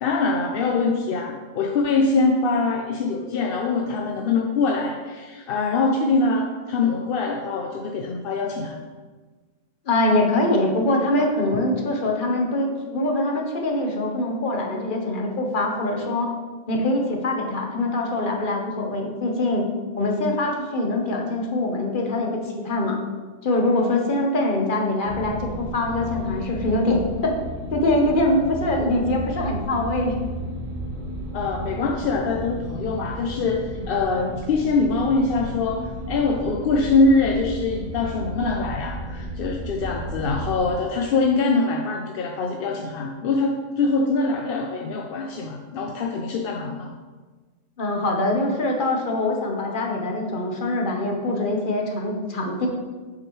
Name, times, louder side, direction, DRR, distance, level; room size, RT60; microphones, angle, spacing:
voice 1, 0.0-8.8 31.3-46.9, left 3 dB, 60° left, 2 dB, 0.6 m, -23 dB
voice 2, 9.9-16.3 16.7-19.7 20.0-23.0 23.4-27.3 27.7-30.2 31.3-31.4 47.8-52.7, left 2 dB, 45° left, 1 dB, 1.1 m, -23 dB
sound 1, 25.0-40.7, right 1 dB, 70° right, 2.1 m, -33 dB
7.5 x 6.0 x 3.1 m, 1.4 s
omnidirectional pair, 1.3 m